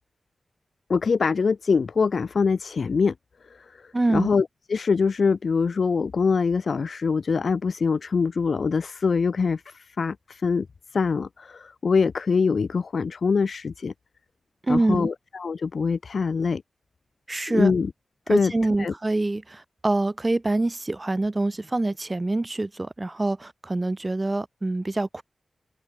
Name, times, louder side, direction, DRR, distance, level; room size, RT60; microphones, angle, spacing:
voice 1, 0.9-3.1 3.5-3.8 4.1-10.7 10.9-13.9 14.7-16.6 17.5-17.9 18.3-18.5 18.8-18.9, left 5 dB, 65° left, 0.7 m, -24 dB
voice 2, 3.9-4.3 14.6-15.1 17.3-17.7 18.3-25.2, right 2 dB, 25° right, 1.7 m, -25 dB
open air
wide cardioid pair, 125°, 0 cm